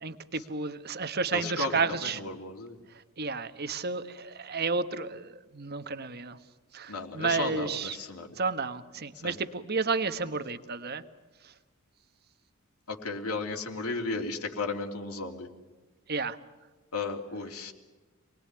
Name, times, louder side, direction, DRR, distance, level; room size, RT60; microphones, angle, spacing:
voice 1, 0.0-2.2 2.9-6.4 6.7-8.0 8.3-11.0 11.4-11.5 16.1-16.4, right 4 dB, 45° right, 11 dB, 1.2 m, -32 dB
voice 2, 1.3-2.8 6.9-8.3 9.2-9.4 12.9-15.5 16.9-17.7, left 3 dB, 90° left, 2 dB, 3.2 m, -34 dB
27.5 x 20.5 x 9.8 m, 1.2 s
head